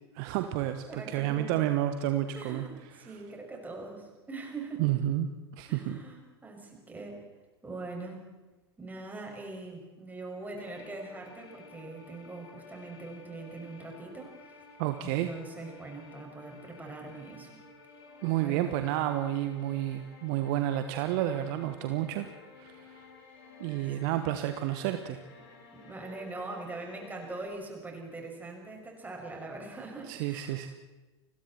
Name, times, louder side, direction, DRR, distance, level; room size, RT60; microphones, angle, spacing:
voice 1, 0.1-2.6 4.8-5.3 5.6-6.0 14.8-15.3 18.2-22.3 22.6-23.0 23.6-25.2 30.1-30.7, right 13 dB, 50° right, 9 dB, 1.4 m, -30 dB
voice 2, 0.9-1.6 2.3-4.9 5.7-7.2 7.6-8.2 8.8-14.4 15.0-17.5 18.4-18.8 25.3-25.5 25.7-30.7, right 3 dB, 10° right, 1 dB, 6.7 m, -42 dB
sound 1, 10.6-27.5, left 4 dB, 55° left, 5.8 m, -53 dB
30.0 x 22.0 x 4.5 m, 1.2 s
figure-of-eight pair, 85°, 14 cm